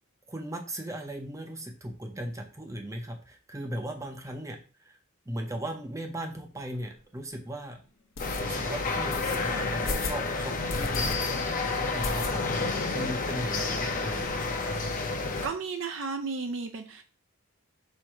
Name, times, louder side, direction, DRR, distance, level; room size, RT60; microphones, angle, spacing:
voice 1, 0.3-5.0 5.3-7.8 8.4-14.3, right 1 dB, 15° right, 3 dB, 0.5 m, -38 dB
sound 1, 6.7-6.8 7.3-7.4 8.1-8.4 9.1-9.4 9.8-10.2 10.7-11.1 11.5-11.6 12.0-12.7 13.0-13.1 13.4-13.5 13.7-14.3, left 3 dB, 70° left, 0.8 m, -35 dB
sound 2, 8.2-15.5, left 3 dB, 40° left, 0.7 m, -30 dB
voice 2, 15.4-17.0, right 4 dB, 60° right, 6 dB, 0.4 m, -33 dB
4.4 x 2.6 x 4.5 m, 0.36 s
head